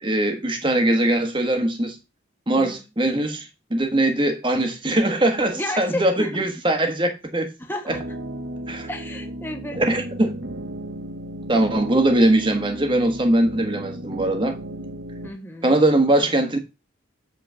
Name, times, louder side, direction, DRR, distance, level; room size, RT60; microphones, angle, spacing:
voice 1, 0.0-2.0 2.5-7.5 7.9-8.0 8.7-8.9 9.8-10.3 11.5-14.6 15.6-16.6, right 1 dB, 25° right, 1.4 m, -21 dB
voice 2, 2.5-2.9 5.5-6.5 7.6-8.0 8.9-9.8 15.2-15.8, left 1 dB, 10° left, 1.2 m, -32 dB
sound 1, 7.9-15.3, right 1 dB, 75° right, 1.1 m, -34 dB
8.1 x 4.3 x 6.3 m
head